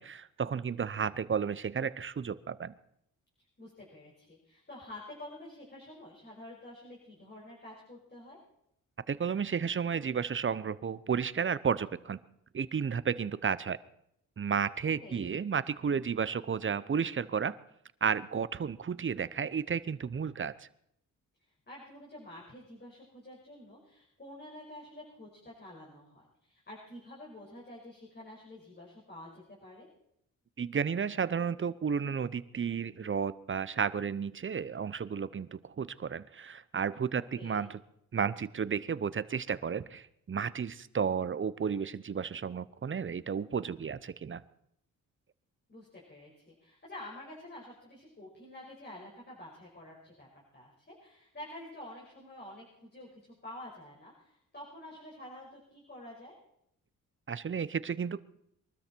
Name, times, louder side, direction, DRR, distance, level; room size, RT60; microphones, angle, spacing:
voice 1, 0.0-2.7 9.1-12.2 12.5-13.8 14.4-17.6 18.0-20.7 30.6-37.8 38.1-44.4 57.3-58.2, right 6 dB, 35° right, 17 dB, 0.8 m, -32 dB
voice 2, 3.6-8.4 15.0-15.3 21.7-29.9 37.1-37.7 45.7-50.3 50.5-56.3, left 1 dB, 30° left, -5 dB, 5.6 m, -49 dB
23.0 x 13.0 x 4.6 m, 0.74 s
cardioid pair, 75°, 35 cm